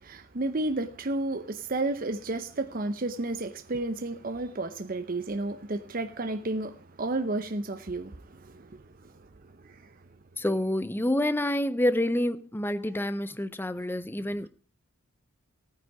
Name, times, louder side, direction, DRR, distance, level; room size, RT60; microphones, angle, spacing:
voice 1, 0.0-8.8 9.6-9.8, right 2 dB, 40° right, 0.7 m, -32 dB
voice 2, 10.4-14.5, left 1 dB, 10° left, 0.5 m, -28 dB
15.5 x 9.7 x 4.8 m
head